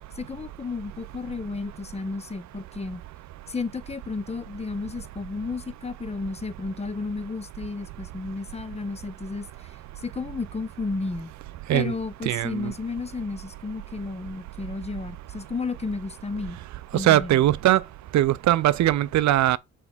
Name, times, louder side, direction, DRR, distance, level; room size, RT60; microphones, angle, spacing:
voice 1, 0.2-3.0 3.5-9.5 10.0-11.3 11.7-16.6 16.9-17.4, left 4 dB, 20° left, 0.8 m, -32 dB
voice 2, 12.2-12.7 16.9-17.8 18.1-19.6, right 14 dB, 65° right, 0.6 m, -20 dB
6.1 x 4.7 x 3.6 m
cardioid pair, 90°, 30 cm